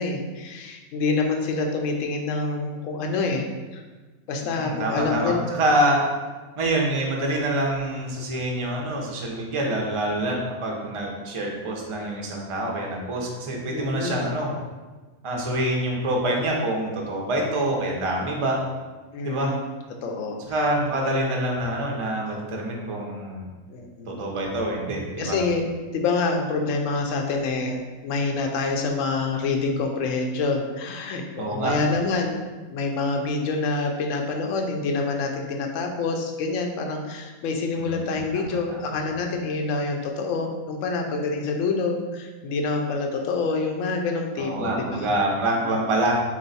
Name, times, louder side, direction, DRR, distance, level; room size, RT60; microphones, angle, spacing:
voice 1, 0.0-3.8 4.3-5.5 13.7-14.3 19.1-19.6 20.0-20.7 23.7-24.1 25.2-45.1 45.5-45.8, left 3 dB, 65° left, 3 dB, 0.9 m, -27 dB
voice 2, 4.5-6.0 6.6-14.5 15.2-18.6 19.2-19.5 20.5-23.5 24.1-25.4 31.4-31.7 37.8-38.8 44.4-46.2, right 1 dB, 35° right, -1 dB, 0.5 m, -26 dB
4.3 x 3.1 x 4.0 m, 1.3 s
omnidirectional pair, 1.6 m